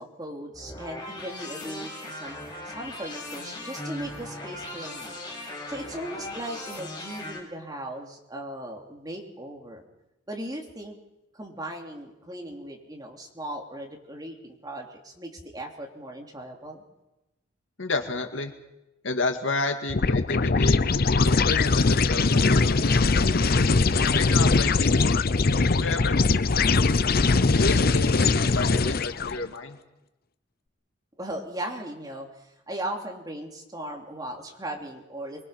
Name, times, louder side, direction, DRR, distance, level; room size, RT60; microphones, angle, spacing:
voice 1, 0.0-2.4 2.6-5.2 5.7-9.8 10.3-11.0 11.3-16.8 31.2-32.3 32.7-35.4, right 1 dB, 20° right, 1 dB, 3.3 m, -37 dB
sound 1, 0.5-7.4, left 1 dB, 20° left, 6.7 m, -38 dB
voice 2, 17.8-18.5 19.0-20.8 21.2-23.1 24.1-25.2 25.7-26.1 27.6-29.8, left 3 dB, 85° left, 5 dB, 2.2 m, -31 dB
sound 2, 19.9-29.4, left 3 dB, 50° left, 0.7 m, -21 dB
24.0 x 23.0 x 5.9 m, 0.95 s
head